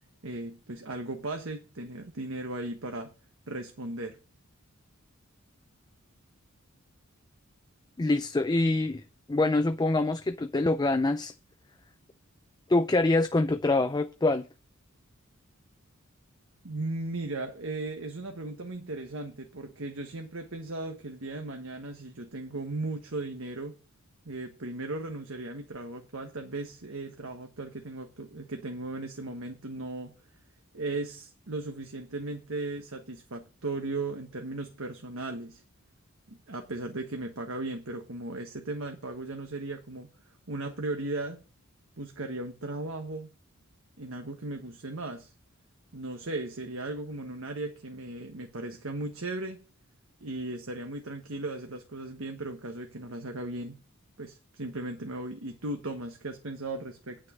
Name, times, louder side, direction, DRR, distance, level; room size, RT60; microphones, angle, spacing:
voice 1, 0.2-3.1 3.5-4.2 16.6-23.8 24.2-30.1 30.7-35.6 36.3-40.1 40.5-41.4 42.0-43.3 44.0-45.3 45.9-49.6 50.2-53.8 54.2-57.2, right 2 dB, 65° right, 1.3 m, -37 dB
voice 2, 8.0-9.0 9.3-11.3 12.7-14.5, left 2 dB, 20° left, 0.4 m, -25 dB
9.2 x 6.4 x 6.3 m
head